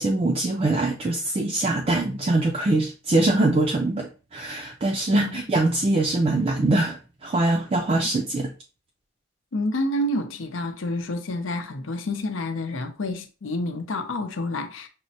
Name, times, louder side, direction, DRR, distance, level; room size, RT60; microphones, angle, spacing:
voice 1, 0.0-8.5, right 2 dB, 30° right, 0.3 m, -23 dB
voice 2, 9.5-14.9, left 1 dB, 85° left, 0.6 m, -29 dB
6.1 x 2.1 x 2.7 m
head